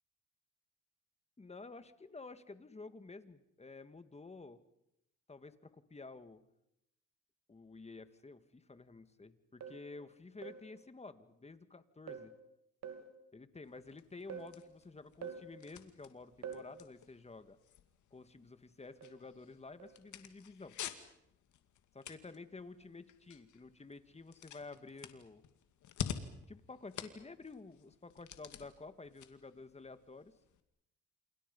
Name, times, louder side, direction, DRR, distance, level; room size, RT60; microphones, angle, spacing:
voice 1, 1.4-4.6 5.3-6.4 7.5-12.3 13.3-17.6 18.1-20.8 21.9-25.4 26.5-30.3, left 3 dB, 20° left, 11 dB, 2.0 m, -51 dB
sound 1, 9.6-9.9 10.4-10.7 12.1-12.4 12.8-13.1 14.3-14.6 15.2-15.5 16.4-16.8 19.0-19.3 19.8-20.0, right 7 dB, 60° right, 3.3 m, -46 dB
sound 2, 13.6-30.6, left 9 dB, 75° left, 2.4 m, -50 dB
29.0 x 28.0 x 5.5 m, 0.80 s
cardioid pair, 90°, 30 cm